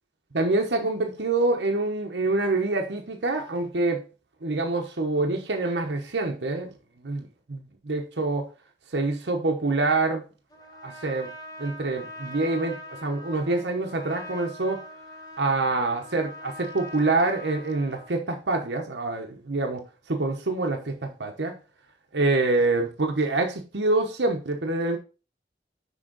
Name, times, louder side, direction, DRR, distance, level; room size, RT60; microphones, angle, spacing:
voice 1, 0.3-4.0 4.4-6.7 7.0-8.5 8.9-10.2 10.8-11.3 11.6-14.8 15.4-21.5 22.1-25.0, right 2 dB, 80° right, 1.0 m, -26 dB
Trumpet, 10.5-18.2, left 1 dB, 20° left, 1.3 m, -42 dB
6.3 x 5.5 x 3.9 m
head